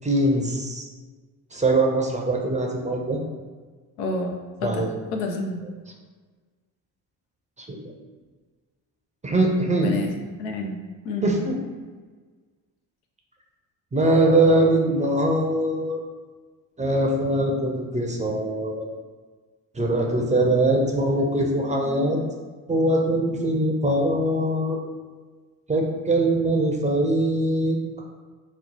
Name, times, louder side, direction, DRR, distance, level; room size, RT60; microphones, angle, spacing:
voice 1, 0.0-0.8 1.5-3.2 4.6-4.9 7.7-7.8 9.2-9.9 11.2-11.6 13.9-16.0 16.8-18.9 19.7-22.2 22.7-24.8 25.7-27.8, right 1 dB, 15° right, 0 dB, 0.5 m, -22 dB
voice 2, 4.0-4.3 4.6-5.6 9.7-10.8 11.0-11.3, left 2 dB, 85° left, 2 dB, 0.6 m, -29 dB
3.0 x 2.0 x 3.9 m, 1.4 s
hypercardioid pair, 50°, 46 cm